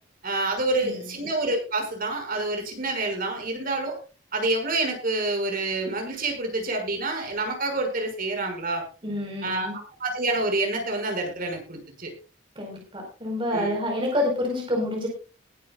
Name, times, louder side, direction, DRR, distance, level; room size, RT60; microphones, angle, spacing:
voice 1, 0.2-4.0 4.3-8.8 9.4-12.1 13.5-13.7, right 2 dB, 50° right, 3 dB, 6.0 m, -28 dB
voice 2, 0.8-1.3 9.0-9.7 12.5-15.1, left 1 dB, 25° right, 0 dB, 4.7 m, -28 dB
20.5 x 11.0 x 2.4 m, 0.33 s
head